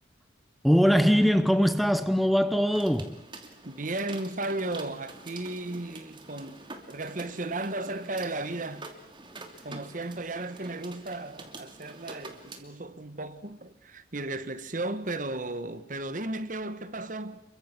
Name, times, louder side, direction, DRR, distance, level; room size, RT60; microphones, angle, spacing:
voice 1, 0.6-3.2, equal, ahead, 0.8 m, -22 dB
sound 1, 2.7-12.6, right 2 dB, 25° right, 2.8 m, -46 dB
voice 2, 3.6-8.9 9.6-17.4, right 2 dB, 45° right, 1.5 m, -35 dB
28.5 x 23.5 x 6.1 m
head